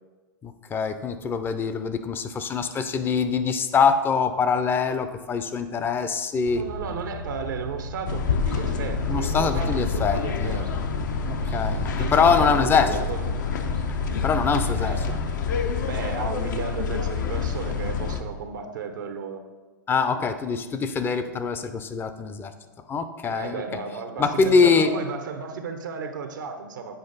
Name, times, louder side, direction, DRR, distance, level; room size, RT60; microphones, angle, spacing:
voice 1, 0.4-6.6 9.1-10.6 11.2-13.0 14.2-14.9 19.9-22.5 22.9-23.6 24.2-24.9, left 5 dB, 20° left, 10 dB, 0.5 m, -23 dB
sound 1, 6.5-15.3, right 2 dB, 90° right, 1.2 m, -36 dB
voice 2, 6.6-10.7 12.0-13.3 14.8-15.2 15.8-19.4 23.3-26.9, right 5 dB, 70° right, 7 dB, 0.8 m, -34 dB
sound 2, 8.1-18.2, left 6 dB, 65° left, 0.7 m, -27 dB
8.0 x 5.0 x 3.9 m, 1.3 s
figure-of-eight pair, 100°, 11 cm